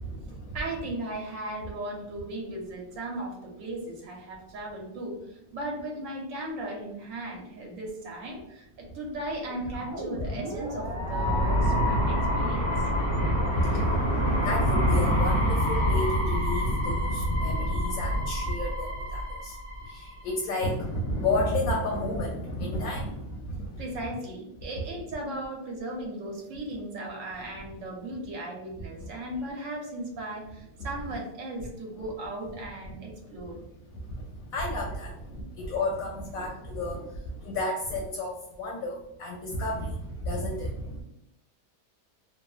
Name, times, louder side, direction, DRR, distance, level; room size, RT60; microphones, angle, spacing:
voice 1, 0.0-0.5 13.2-19.6 19.9-23.8 34.5-37.1 37.4-41.0, left 1 dB, 70° left, -1 dB, 0.9 m, -30 dB
voice 2, 0.5-12.7 18.9-19.0 23.8-33.6, right 1 dB, 60° right, 0 dB, 0.9 m, -37 dB
sound 1, 9.4-20.3, equal, 40° right, 0.4 m, -27 dB
3.0 x 2.0 x 2.3 m, 0.83 s
omnidirectional pair, 1.8 m